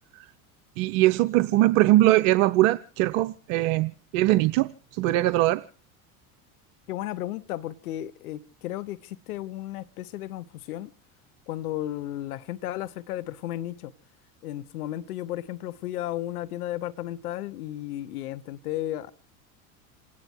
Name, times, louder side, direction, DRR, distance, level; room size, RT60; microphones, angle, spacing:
voice 1, 0.8-5.6, right 17 dB, 65° right, 0.8 m, -21 dB
voice 2, 6.9-10.9 11.5-13.9 14.4-19.1, left 14 dB, 85° left, 0.9 m, -34 dB
28.0 x 9.7 x 4.6 m
hypercardioid pair, 100°, 44 cm